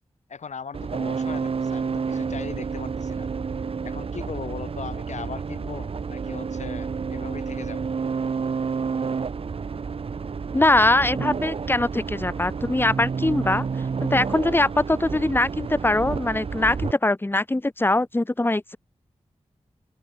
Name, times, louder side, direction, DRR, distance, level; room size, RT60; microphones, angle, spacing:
voice 1, 0.3-3.3 3.8-7.9, left 6 dB, 85° left, 1.9 m, -38 dB
sound 1, 0.7-16.9, right 5 dB, 55° right, 0.6 m, -30 dB
voice 2, 10.5-13.7 14.1-18.8, left 2 dB, 20° left, 1.3 m, -22 dB
open air
wide cardioid pair, 75°, 12 cm